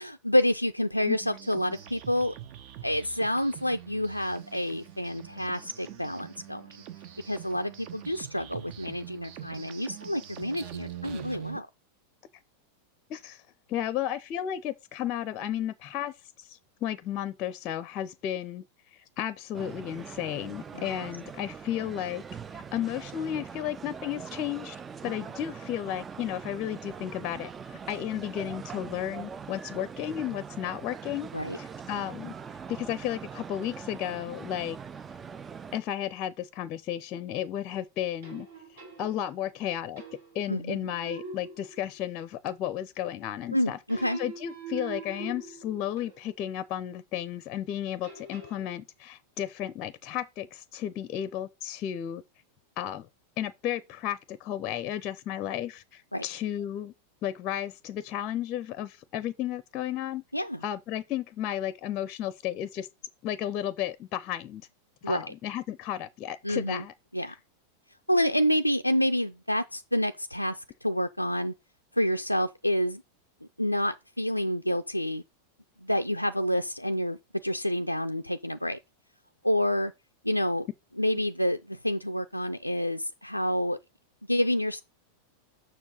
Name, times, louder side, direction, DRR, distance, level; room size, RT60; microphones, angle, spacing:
voice 1, 0.0-2.3 2.8-6.7 7.2-11.7 20.7-20.9 31.3-31.6 40.5-40.9 43.5-44.2 56.1-56.2 60.3-60.6 65.0-65.2 66.4-66.8 67.1-67.3 68.1-71.5 71.9-73.0 73.6-75.2 75.8-78.8 79.4-79.9 80.2-80.7 81.0-83.8 84.3-84.8, equal, 90° left, 0.3 m, -28 dB
sound 1, 1.2-11.6, right 11 dB, 45° right, 1.0 m, -44 dB
voice 2, 13.1-13.4 13.7-22.2 22.5-24.8 25.0-31.3 31.5-32.3 32.7-34.8 35.7-38.5 38.7-40.0 40.3-52.2 52.8-53.1 53.4-56.9 57.2-60.2 60.6-62.9 63.2-64.6 65.1-66.9 67.3-67.4, left 11 dB, 35° left, 0.6 m, -33 dB
sound 2, 19.5-35.8, right 6 dB, 20° right, 0.4 m, -42 dB
sound 3, 38.2-39.5 40.0-40.5 40.8-42.2 43.9-46.4 48.0-48.7, right 5 dB, 65° right, 2.7 m, -43 dB
7.0 x 6.3 x 4.0 m
figure-of-eight pair, 90°, 0 cm